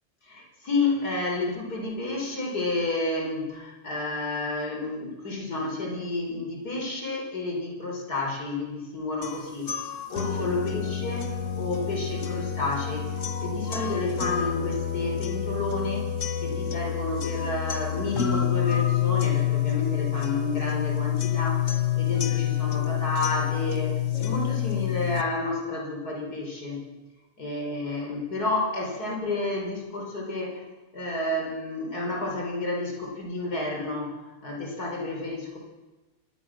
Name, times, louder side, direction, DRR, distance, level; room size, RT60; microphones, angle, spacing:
voice 1, 0.2-13.1 13.4-16.1 16.4-21.7 22.0-26.8 27.4-30.6 30.9-35.6, left 2 dB, 80° left, 0 dB, 5.1 m, -30 dB
sound 1, 9.2-25.2, left 10 dB, 55° left, 1.7 m, -28 dB
26.0 x 21.0 x 6.3 m, 1.1 s
omnidirectional pair, 1.6 m